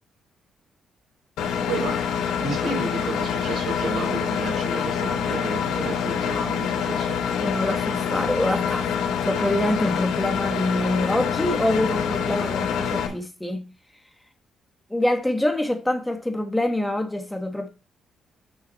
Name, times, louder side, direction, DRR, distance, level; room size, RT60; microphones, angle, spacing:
Engine, 1.4-13.1, left 7 dB, 85° left, 3.3 m, -26 dB
voice 1, 1.7-2.1 2.4-7.3, right 3 dB, 65° right, 4.5 m, -32 dB
voice 2, 7.4-9.0 9.2-13.6 14.9-17.7, left 1 dB, 10° left, 1.5 m, -25 dB
9.7 x 6.3 x 4.1 m
cardioid pair, 90°, 0 cm